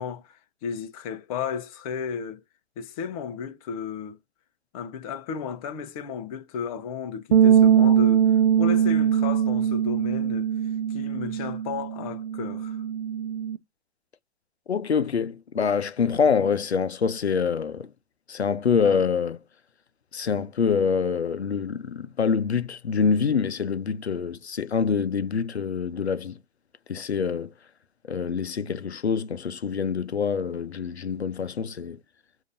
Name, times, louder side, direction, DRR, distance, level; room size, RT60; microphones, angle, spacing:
voice 1, 0.0-2.4 2.8-4.2 4.7-10.5 10.9-12.8, left 6 dB, 35° left, 0.8 m, -34 dB
sound 1, 7.3-13.6, right 9 dB, 55° right, 0.6 m, -21 dB
voice 2, 14.7-17.9 18.3-19.4 20.1-26.4 26.9-27.5 28.1-32.0, left 6 dB, 85° left, 0.6 m, -25 dB
5.0 x 2.7 x 2.6 m
figure-of-eight pair, 120°, 32 cm